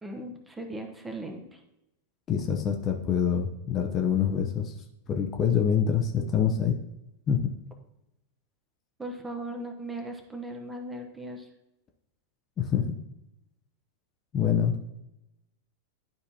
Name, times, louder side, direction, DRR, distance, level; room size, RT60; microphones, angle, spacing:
voice 1, 0.0-1.6 9.0-11.5, right 1 dB, 10° right, 4 dB, 1.1 m, -38 dB
voice 2, 2.3-4.7 5.1-6.8 7.3-7.4 12.6-12.9 14.3-14.9, left 7 dB, 30° left, 2 dB, 0.7 m, -25 dB
11.5 x 4.0 x 2.8 m, 0.89 s
figure-of-eight pair, 90°, 0 cm